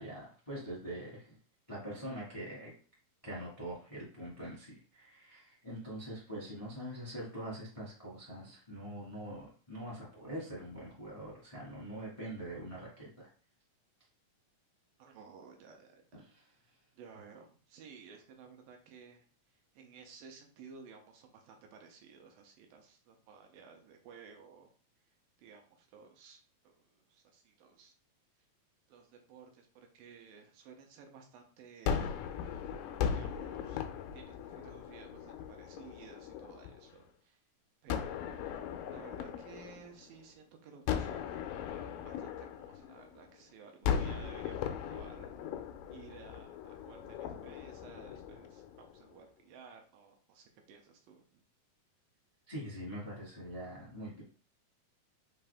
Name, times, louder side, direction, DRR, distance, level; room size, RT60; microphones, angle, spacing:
voice 1, 0.0-1.4 1.7-2.7 3.2-13.1 16.2-16.5 52.5-54.2, right 1 dB, 30° left, -6 dB, 0.6 m, -43 dB
voice 2, 15.0-16.3 16.9-19.2 19.7-24.7 25.4-27.9 28.9-32.1 32.8-33.9 34.1-37.4 37.8-38.6 38.9-41.3 41.8-45.3 45.9-51.4, right 6 dB, 80° right, 3 dB, 2.3 m, -55 dB
Gunshot gunfire, 31.9-37.0 37.9-40.3 40.9-43.3 43.8-49.1, left 8 dB, 80° left, 2.0 m, -38 dB
5.6 x 2.6 x 3.4 m, 0.41 s
omnidirectional pair, 4.1 m